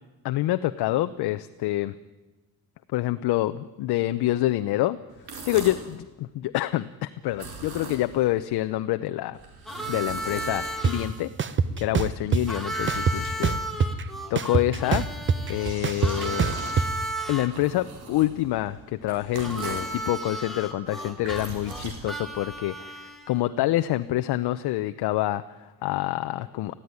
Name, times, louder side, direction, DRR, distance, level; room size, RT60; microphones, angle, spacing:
voice 1, 0.2-2.0 2.9-5.0 5.5-9.4 9.9-13.6 14.3-15.1 15.5-16.6 17.3-26.7, left 15 dB, 75° left, 10 dB, 0.8 m, -27 dB
sound 1, 5.1-6.0 7.3-8.3 9.3-11.1 11.8-13.7 15.1-20.0 20.9-22.6, right 3 dB, 70° right, 4.7 m, -41 dB
Harmonica, 9.6-11.1 12.5-17.5 19.4-23.3, right 1 dB, ahead, 2.0 m, -34 dB
sound 2, 10.8-10.9 11.4-12.4 12.9-14.0 14.3-16.9, right 6 dB, 30° right, 0.9 m, -23 dB
20.0 x 15.0 x 9.7 m, 1.1 s
cardioid pair, 145°, 39 cm